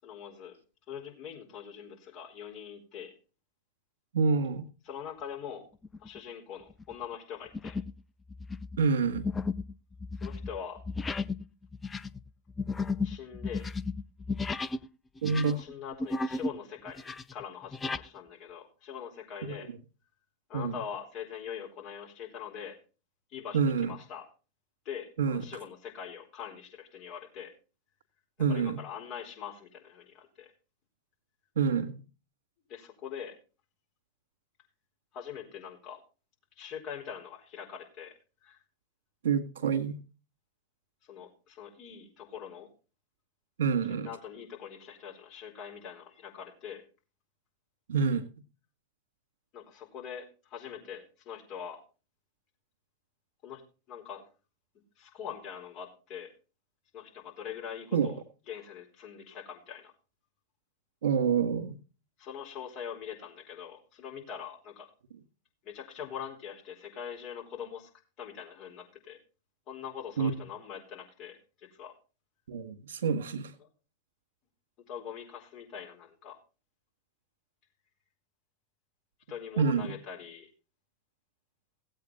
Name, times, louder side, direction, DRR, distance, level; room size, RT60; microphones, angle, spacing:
voice 1, 0.0-0.6 0.9-3.1 4.9-5.6 6.0-7.8 10.2-10.8 13.0-13.6 14.6-14.7 15.4-19.7 20.5-22.8 23.3-24.2 24.8-27.5 28.4-30.5 32.7-33.3 35.1-36.0 36.6-38.1 38.4-38.6 41.0-42.7 43.9-46.8 49.5-51.8 53.4-53.6 53.9-54.2 55.0-56.3 56.9-58.2 58.5-59.9 62.2-64.9 65.6-67.9 68.2-69.2 69.7-71.9 73.6-73.7 74.9-76.4 79.3-80.5, left 8 dB, 35° left, 4.2 m, -43 dB
voice 2, 4.1-4.6 8.8-9.3 15.2-15.6 19.4-19.5 20.5-20.8 23.5-23.9 25.2-25.4 28.4-28.8 31.5-32.0 39.2-40.0 43.6-44.1 47.9-48.3 57.9-58.1 61.0-61.8 70.2-70.4 72.5-73.5 79.6-79.9, right 6 dB, 55° right, 1.8 m, -27 dB
sound 1, 5.8-6.2 6.7-6.9 7.5-8.0 8.3-14.9 15.2-16.6 16.9-18.1, left 3 dB, 15° left, 0.5 m, -34 dB
17.0 x 8.2 x 4.1 m
figure-of-eight pair, 90°, 0 cm